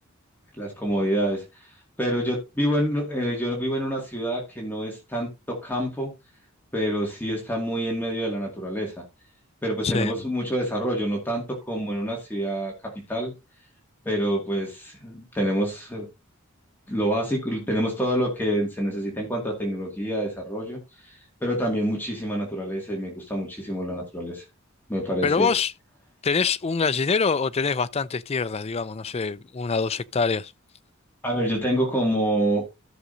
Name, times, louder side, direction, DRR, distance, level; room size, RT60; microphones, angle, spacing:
voice 1, 0.6-1.7 2.0-6.1 6.7-9.0 9.6-12.7 13.1-13.3 14.1-16.1 16.9-20.8 21.4-24.4 24.9-25.5 31.2-32.7, equal, 10° left, 2.1 m, -27 dB
voice 2, 9.8-10.1 25.2-25.7 26.2-30.5, left 5 dB, 30° left, 0.4 m, -24 dB
14.5 x 6.1 x 2.6 m
head